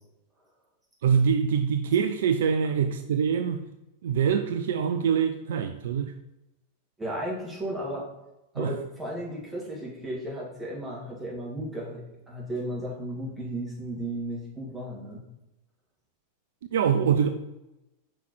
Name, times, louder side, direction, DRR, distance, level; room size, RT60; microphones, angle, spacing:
voice 1, 1.0-3.7 4.0-6.1 8.6-8.7 16.7-17.3, right 7 dB, 60° right, 0.3 m, -24 dB
voice 2, 7.0-8.1 8.5-15.2, right 1 dB, 10° right, 2.2 m, -34 dB
5.3 x 4.4 x 4.4 m
figure-of-eight pair, 90°, 0 cm